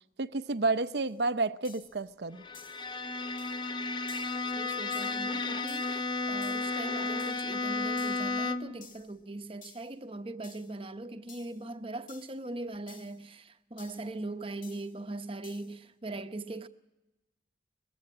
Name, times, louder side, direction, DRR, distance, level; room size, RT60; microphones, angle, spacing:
voice 1, 0.2-2.4, right 3 dB, 70° right, 0.7 m, -30 dB
sound 1, 1.1-1.2 1.6-2.0 2.5-2.9 3.4-3.6 4.1-4.4 4.9-5.3 5.7-6.0 6.4-6.7 7.2-7.4 8.0-8.3 8.8-9.1 9.6-9.9 10.4-10.8 11.3-11.6 12.1-12.4 12.9-13.2 13.8-14.1 14.6-15.0 15.4-15.8, left 7 dB, 50° left, 1.9 m, -54 dB
Bowed string instrument, 2.4-8.8, left 3 dB, 25° left, 0.7 m, -33 dB
voice 2, 4.5-16.7, right 2 dB, 30° right, 0.8 m, -40 dB
21.0 x 15.5 x 8.7 m
head